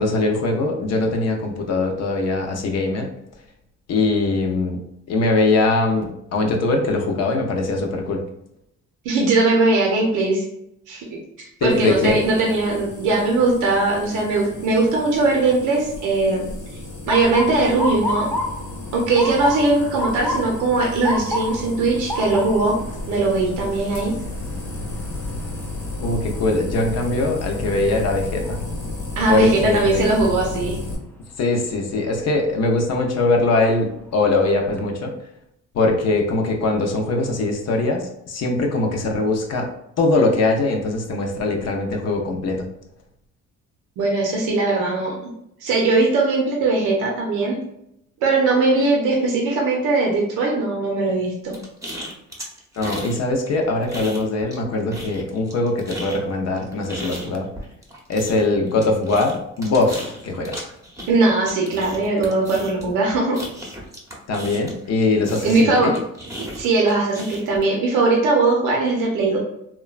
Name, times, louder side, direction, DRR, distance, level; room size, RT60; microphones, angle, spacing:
voice 1, 0.0-3.1 3.9-4.8 5.1-8.2 11.6-12.2 26.0-28.6 29.3-30.0 31.4-35.1 35.7-39.7 40.0-42.7 52.8-57.5 58.1-60.7 64.3-65.9, left 2 dB, 55° left, 2 dB, 0.6 m, -21 dB
voice 2, 9.0-10.4 10.9-11.2 11.6-16.8 17.1-18.3 18.9-22.8 23.1-24.1 29.1-30.8 44.0-45.2 45.6-47.6 48.2-51.5 61.1-63.4 65.4-65.9 66.4-69.4, right 3 dB, 90° right, -1 dB, 0.6 m, -20 dB
sound 1, 11.7-31.0, left 2 dB, 85° left, 1.1 m, -33 dB
Motor vehicle (road) / Siren, 17.1-29.0 29.4-29.9 30.7-31.0 32.8-33.1 33.6-33.7 34.1-34.8, left 1 dB, 5° left, 0.3 m, -31 dB
sound 2, 51.5-53.2 53.5-54.6 54.9-64.9 65.2-67.6, equal, 10° right, 0.7 m, -36 dB
3.0 x 2.1 x 2.3 m, 0.79 s
cardioid pair, 90°, 30 cm